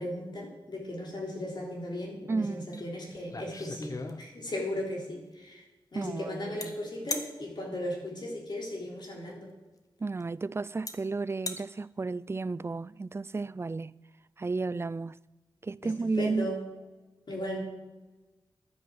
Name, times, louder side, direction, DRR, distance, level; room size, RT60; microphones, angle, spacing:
voice 1, 0.0-5.6 5.9-9.5 15.8-15.9 16.2-16.6 17.3-17.6, left 1 dB, 60° left, 3.5 m, -36 dB
voice 2, 2.3-2.9 5.9-6.7 10.0-14.0 14.4-15.2 15.6-16.5, right 3 dB, 30° right, 0.4 m, -33 dB
sound 1, 2.7-2.8 3.2-4.6 6.6-6.7 7.1-7.3 9.2-9.3 10.2-10.3 10.9-11.0 11.3-11.6, left 3 dB, 45° left, 1.3 m, -36 dB
11.0 x 10.0 x 7.7 m
wide cardioid pair, 80°, 9 cm